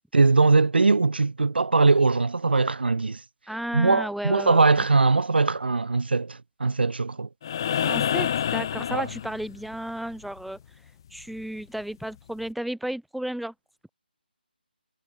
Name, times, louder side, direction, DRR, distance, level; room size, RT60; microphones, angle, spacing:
voice 1, 0.1-3.2 3.7-7.3 8.9-9.0, right 3 dB, 75° right, 4.2 m, -21 dB
voice 2, 3.5-4.8 7.8-10.6 11.1-13.5, right 1 dB, ahead, 4.0 m, -33 dB
sound 1, 7.4-9.7 11.6-11.7, left 9 dB, 25° left, 0.5 m, -27 dB
hypercardioid pair, 170°, 6 cm